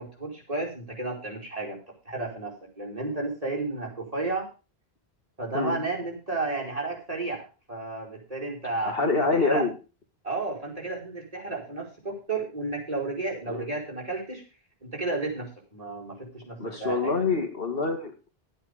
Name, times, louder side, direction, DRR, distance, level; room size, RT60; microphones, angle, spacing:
voice 1, 0.0-1.8 2.0-4.5 5.4-9.6 10.2-14.4 14.8-17.1, right 3 dB, 35° right, -2 dB, 4.8 m, -32 dB
voice 2, 8.8-9.7 13.5-13.7 16.6-18.3, left 4 dB, 65° left, 5 dB, 2.4 m, -26 dB
12.0 x 9.6 x 5.1 m, 0.32 s
omnidirectional pair, 1.0 m